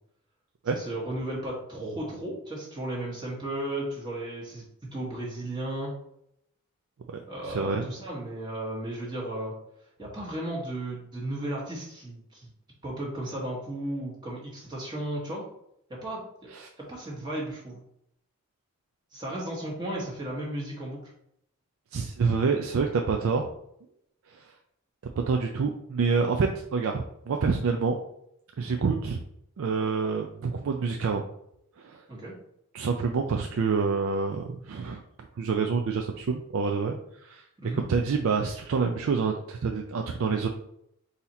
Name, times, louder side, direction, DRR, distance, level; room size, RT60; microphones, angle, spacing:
voice 1, 0.7-4.6 4.9-5.9 7.3-9.5 10.0-12.5 12.8-15.4 15.9-16.2 16.8-17.8 19.1-21.1 32.1-32.3 37.6-37.8, right 1 dB, 20° right, -5 dB, 1.1 m, -34 dB
voice 2, 7.1-7.9 16.5-16.7 21.9-23.5 24.3-24.5 25.3-28.0 28.6-29.2 29.6-31.2 31.8-32.0 32.7-35.0 35.4-37.4 37.9-40.5, right 5 dB, 65° right, 3 dB, 0.4 m, -27 dB
3.9 x 2.8 x 4.1 m, 0.75 s
head